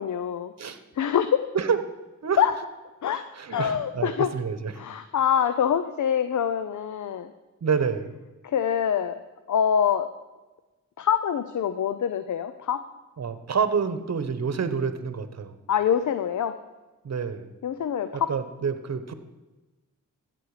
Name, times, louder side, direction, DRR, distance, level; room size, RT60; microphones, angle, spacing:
voice 1, 0.0-0.5 1.0-1.4 2.4-2.5 3.0-3.2 3.5-4.3 4.8-7.3 8.4-9.2 9.5-10.1 11.0-12.8 15.7-16.6 17.6-18.3, left 8 dB, 65° left, 11 dB, 0.6 m, -25 dB
voice 2, 3.3-4.8 7.6-8.1 13.2-15.5 17.0-17.5 18.1-19.1, right 6 dB, 55° right, 11 dB, 1.1 m, -28 dB
14.0 x 7.8 x 4.9 m, 1.2 s
cardioid pair, 70°, 32 cm